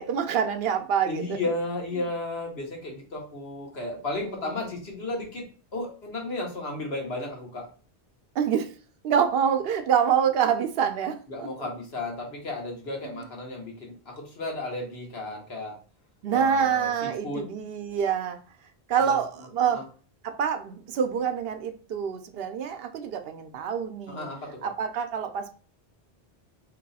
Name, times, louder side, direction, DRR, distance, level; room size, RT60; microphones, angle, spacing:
voice 1, 0.0-1.4 4.2-4.7 8.4-8.7 9.0-11.7 16.2-18.4 18.9-19.3 19.5-19.8 20.2-24.3 24.6-25.6, right 7 dB, 75° right, 8 dB, 0.8 m, -26 dB
voice 2, 1.1-7.7 11.3-15.8 16.3-17.4 19.0-19.2 19.6-19.8 24.1-24.7, left 2 dB, 80° left, 0 dB, 1.4 m, -34 dB
3.0 x 3.0 x 4.0 m, 0.39 s
omnidirectional pair, 1.0 m